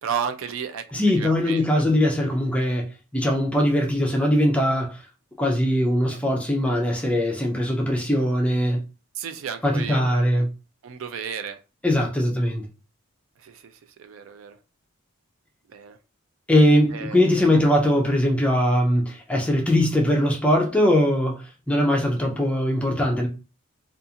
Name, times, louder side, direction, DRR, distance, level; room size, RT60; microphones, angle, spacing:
voice 1, 0.0-1.8 9.1-10.5 10.8-11.6 13.4-14.6 15.7-16.0 16.9-17.6, right 7 dB, 70° right, 0.4 m, -33 dB
voice 2, 0.9-5.0 5.4-8.8 9.6-10.5 11.8-12.7 16.5-23.3, equal, 5° left, 0.4 m, -21 dB
2.4 x 2.4 x 2.7 m
head